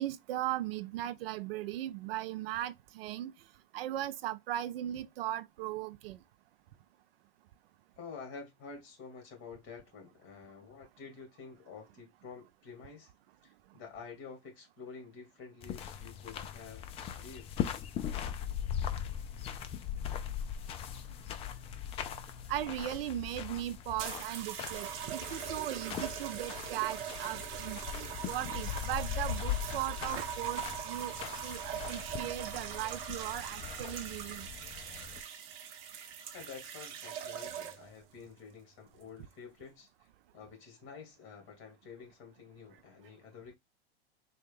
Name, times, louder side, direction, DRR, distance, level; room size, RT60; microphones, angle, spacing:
voice 1, 0.0-3.3 3.7-6.2 22.5-31.2 31.4-34.5, right 13 dB, 65° right, 0.5 m, -38 dB
voice 2, 8.0-13.1 13.4-17.5 36.3-39.9 40.3-43.6, left 5 dB, 40° left, 2.1 m, -49 dB
sound 1, 15.6-35.2, left 9 dB, 20° left, 0.3 m, -40 dB
sound 2, 24.0-38.0 38.9-39.2, right 9 dB, 40° right, 0.9 m, -41 dB
4.1 x 2.3 x 3.4 m
hypercardioid pair, 120°, 31 cm